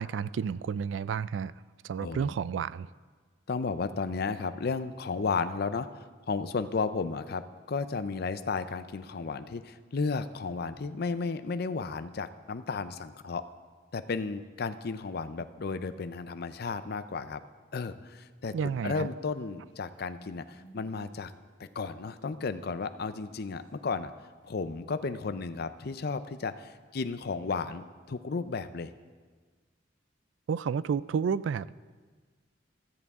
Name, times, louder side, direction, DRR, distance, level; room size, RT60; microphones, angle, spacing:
voice 1, 0.0-1.5 1.8-2.9 18.5-19.1 30.5-31.7, right 6 dB, 75° right, 18 dB, 0.3 m, -31 dB
voice 2, 2.0-2.3 3.5-13.4 13.9-17.4 17.7-21.3 21.6-24.1 24.5-28.9, left 4 dB, 60° left, 11 dB, 0.5 m, -33 dB
sound 1, 19.3-19.4 19.7-23.7, right 1 dB, 30° left, 3.0 m, -58 dB
15.5 x 13.5 x 3.6 m, 1.5 s
head